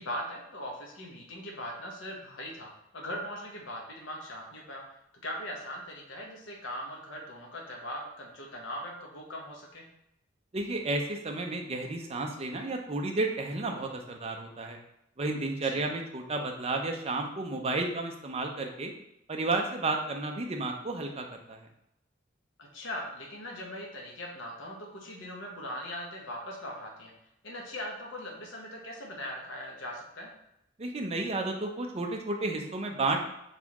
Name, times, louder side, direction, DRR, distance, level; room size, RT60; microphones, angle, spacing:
voice 1, 0.0-4.8 5.2-9.9 15.6-15.8 22.6-27.1 27.4-30.3, equal, 70° left, 0 dB, 1.0 m, -40 dB
voice 2, 10.5-14.8 15.2-18.9 19.3-21.7 30.8-33.3, right 2 dB, 30° right, 3 dB, 0.6 m, -32 dB
4.2 x 3.5 x 3.0 m, 0.81 s
head